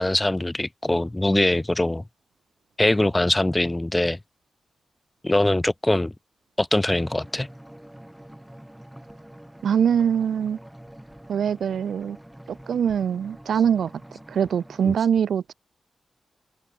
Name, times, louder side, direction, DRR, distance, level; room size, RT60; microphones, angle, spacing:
voice 1, 0.0-2.0 2.8-4.2 5.2-6.1 6.6-7.5, left 1 dB, 20° left, 1.1 m, -22 dB
sound 1, 6.9-15.0, right 1 dB, 5° right, 5.9 m, -46 dB
voice 2, 9.6-10.6 11.3-12.2 12.7-13.9 14.3-15.5, right 8 dB, 85° right, 1.1 m, -23 dB
open air
cardioid pair, 55°, 0 cm